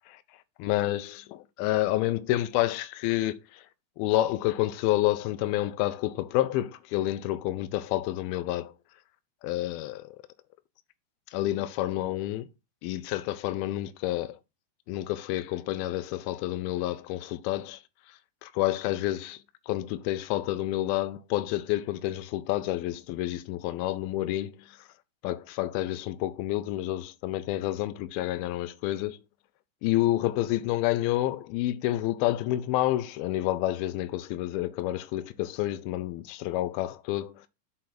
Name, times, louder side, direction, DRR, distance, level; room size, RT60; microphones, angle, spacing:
voice 1, 0.6-3.7 4.0-8.7 9.4-10.2 11.3-12.5 12.8-14.4 14.9-17.8 18.1-19.4 19.7-24.9 25.2-29.2 29.8-37.5, left 15 dB, 85° left, 2.2 m, -29 dB
7.1 x 3.2 x 5.8 m
omnidirectional pair, 4.9 m